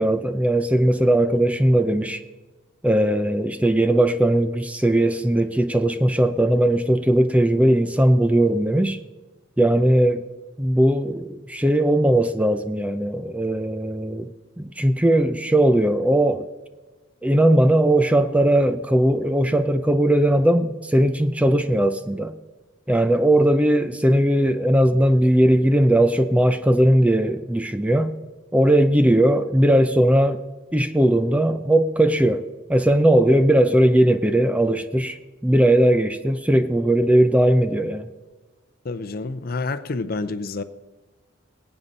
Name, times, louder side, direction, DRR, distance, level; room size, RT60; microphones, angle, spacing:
voice 1, 0.0-2.2 2.8-9.0 9.6-10.2 10.6-14.3 14.6-16.5 17.2-22.3 22.9-28.1 28.5-30.4 30.7-32.4 32.7-35.2 35.4-38.1, right 1 dB, 5° right, 0.4 m, -18 dB
voice 2, 38.8-40.6, left 3 dB, 50° left, 0.6 m, -28 dB
20.5 x 8.9 x 4.1 m
head